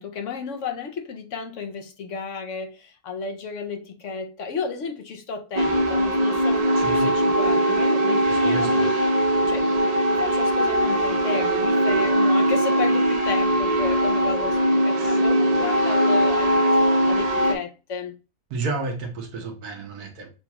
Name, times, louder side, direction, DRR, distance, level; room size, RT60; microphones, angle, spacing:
voice 1, 0.0-8.9 9.5-18.2, left 5 dB, 65° left, 0.9 m, -33 dB
sound 1, 5.6-17.5, right 1 dB, 50° right, 0.4 m, -20 dB
voice 2, 6.7-7.1 8.3-8.8 15.0-15.2 18.5-20.3, right 3 dB, 90° right, 1.5 m, -31 dB
6.9 x 2.3 x 2.9 m
omnidirectional pair, 1.6 m